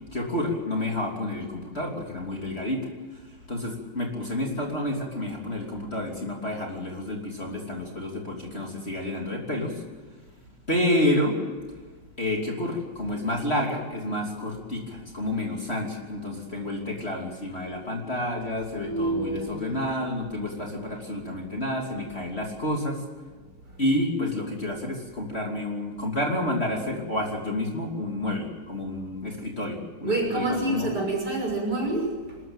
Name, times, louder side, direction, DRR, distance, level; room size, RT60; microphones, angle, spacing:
voice 1, 0.1-2.8 3.5-9.8 10.7-11.4 12.2-23.0 23.8-30.9, left 1 dB, 30° left, 0 dB, 3.3 m, -29 dB
voice 2, 18.8-19.8 30.0-32.5, right 2 dB, 50° right, 0 dB, 6.7 m, -28 dB
25.5 x 14.0 x 9.0 m, 1.4 s
omnidirectional pair, 2.3 m